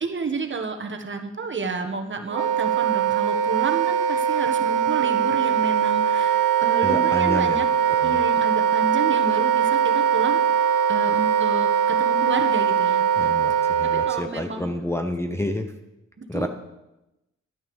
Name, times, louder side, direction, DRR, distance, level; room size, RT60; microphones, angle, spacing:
voice 1, 0.0-7.6 8.0-10.4 10.9-13.0 13.9-14.7 16.2-16.5, right 4 dB, 40° right, 5 dB, 1.5 m, -30 dB
Wind instrument woodwind instrument, 2.3-14.2, right 8 dB, 85° right, 0.8 m, -21 dB
voice 2, 6.8-7.6 7.9-8.2 13.2-15.7 16.3-16.5, left 1 dB, 10° left, 4 dB, 0.9 m, -29 dB
11.5 x 9.9 x 7.1 m, 0.94 s
wide cardioid pair, 115°, 31 cm